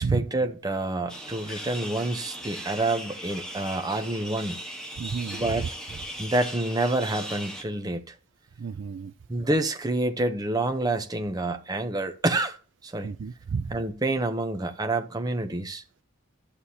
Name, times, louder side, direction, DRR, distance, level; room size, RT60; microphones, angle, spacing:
voice 1, 0.0-4.6 5.3-5.7 6.2-8.1 9.3-12.6 12.8-13.1 13.7-15.8, right 2 dB, 20° right, 0.7 m, -28 dB
sound 1, 1.1-7.6, right 1 dB, 5° left, 1.3 m, -38 dB
voice 2, 5.0-5.7 8.6-9.1 13.0-13.8, right 5 dB, 60° right, 0.4 m, -31 dB
11.5 x 6.8 x 2.8 m
head